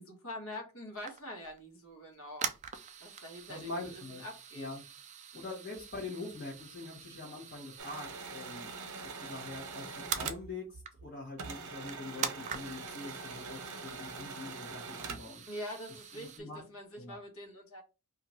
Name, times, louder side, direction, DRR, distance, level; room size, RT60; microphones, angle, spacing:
voice 1, 0.0-2.5 3.0-4.7 15.5-17.8, left 1 dB, 70° left, 1.3 m, -45 dB
sound 1, 0.9-1.6 2.1-10.4 10.8-11.2 11.5-11.6 11.8-16.4, right 7 dB, 30° right, 0.3 m, -44 dB
voice 2, 3.5-4.2 4.5-4.8 5.3-8.7 9.0-15.4 16.1-16.6 17.0-17.2, left 2 dB, 45° left, 1.2 m, -44 dB
sound 2, 7.8-11.1 11.4-15.4, right 4 dB, 80° right, 0.8 m, -44 dB
2.8 x 2.5 x 4.1 m
head